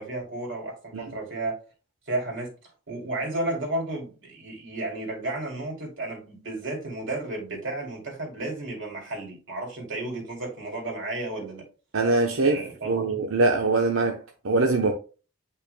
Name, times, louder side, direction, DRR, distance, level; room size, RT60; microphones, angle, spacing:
voice 1, 0.0-1.6 2.1-2.5 2.9-11.6 12.4-13.1, right 2 dB, 65° right, 2.9 m, -33 dB
voice 2, 11.9-14.9, right 3 dB, 85° right, 0.8 m, -23 dB
8.7 x 5.5 x 2.2 m
head